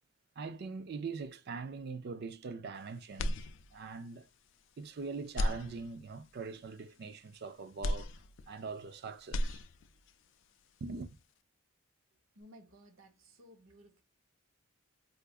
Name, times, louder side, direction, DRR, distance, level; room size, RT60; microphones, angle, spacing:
voice 1, 0.4-3.4 3.7-4.3 4.8-8.1 8.5-9.6 10.8-11.2, right 4 dB, 50° right, 0.4 m, -42 dB
sound 1, 3.1-4.1 4.5-4.6 5.2-6.3 7.8-8.9 9.2-10.1, left 1 dB, 60° left, 0.4 m, -36 dB
voice 2, 12.3-14.0, equal, 65° right, 0.9 m, -57 dB
4.6 x 2.4 x 2.3 m
head